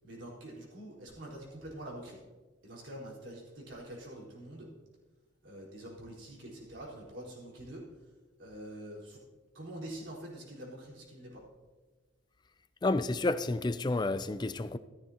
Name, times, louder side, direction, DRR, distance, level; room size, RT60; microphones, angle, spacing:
voice 1, 0.0-2.2 2.6-4.7 5.4-7.9 8.4-9.2 9.5-11.4, right 1 dB, 65° right, 4.3 m, -45 dB
voice 2, 12.8-14.8, left 2 dB, 20° left, 0.3 m, -30 dB
14.0 x 13.5 x 2.9 m
head